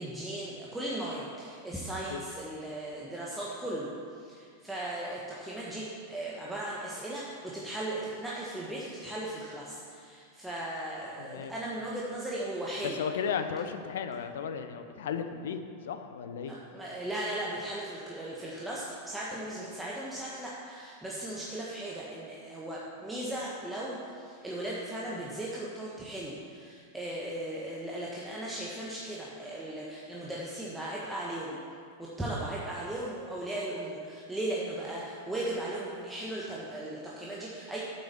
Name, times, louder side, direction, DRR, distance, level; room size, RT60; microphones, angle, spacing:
voice 1, 0.0-13.0 16.5-31.6 32.0-37.8, right 1 dB, 5° right, -6 dB, 1.5 m, -37 dB
voice 2, 11.2-11.5 13.0-16.6, left 7 dB, 60° left, 8 dB, 0.8 m, -35 dB
9.0 x 8.0 x 7.0 m, 2.3 s
figure-of-eight pair, 90°, 0 cm